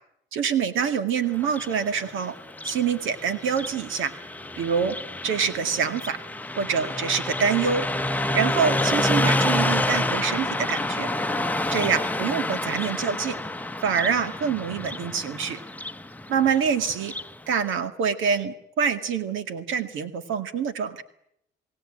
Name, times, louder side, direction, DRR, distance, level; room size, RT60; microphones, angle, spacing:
voice 1, 0.3-2.4 2.6-4.1 4.6-4.9 5.2-6.2 6.6-7.9 8.3-11.1 11.7-13.4 13.8-15.6 16.3-17.1 17.5-21.0, right 6 dB, 85° right, 10 dB, 2.1 m, -25 dB
Car passing by, 1.4-17.4, left 1 dB, 10° left, 0.9 m, -28 dB
29.0 x 18.0 x 8.9 m, 0.76 s
cardioid pair, 90°, 20 cm